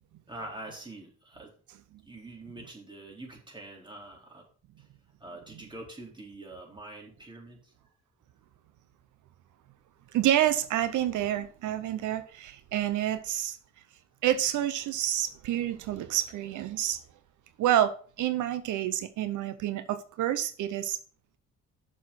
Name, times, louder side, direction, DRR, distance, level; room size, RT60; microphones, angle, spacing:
voice 1, 0.3-1.5 2.1-4.5 4.8-4.9 5.2-7.7, right 2 dB, 15° right, 3.8 m, -45 dB
voice 2, 10.1-13.6 14.2-17.0 17.6-21.0, right 12 dB, 80° right, 0.8 m, -28 dB
6.8 x 6.3 x 5.9 m
cardioid pair, 90°, 30 cm